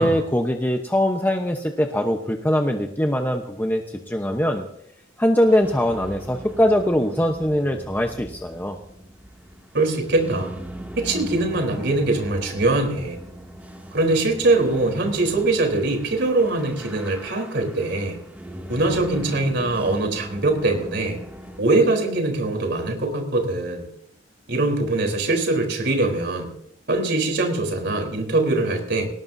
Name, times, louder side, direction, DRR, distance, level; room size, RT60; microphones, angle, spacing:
voice 1, 0.0-4.6 5.2-8.8, equal, 10° left, 2 dB, 1.0 m, -22 dB
sound 1, 5.5-21.6, right 1 dB, 10° right, 2.4 m, -39 dB
voice 2, 9.7-10.6 11.0-13.2 13.9-18.2 18.7-21.2 21.6-23.9 24.5-26.5 26.9-29.1, right 2 dB, 65° right, 3 dB, 3.9 m, -22 dB
20.5 x 19.0 x 2.8 m, 0.74 s
head